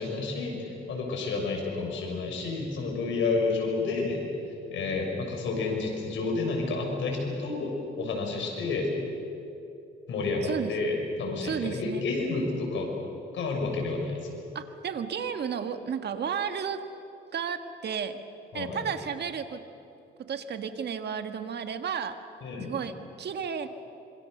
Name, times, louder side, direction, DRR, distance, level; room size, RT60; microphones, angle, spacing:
voice 1, 0.0-4.2 4.7-8.9 10.1-12.9 13.3-14.3 18.5-18.8 22.4-22.7, left 3 dB, 75° left, 1 dB, 6.5 m, -30 dB
voice 2, 10.4-10.8 11.4-12.0 14.6-16.8 17.3-18.2 18.5-19.6 20.3-22.2 22.7-23.7, right 7 dB, 55° right, 8 dB, 1.7 m, -33 dB
26.0 x 24.5 x 6.7 m, 2.8 s
cardioid pair, 90°, 20 cm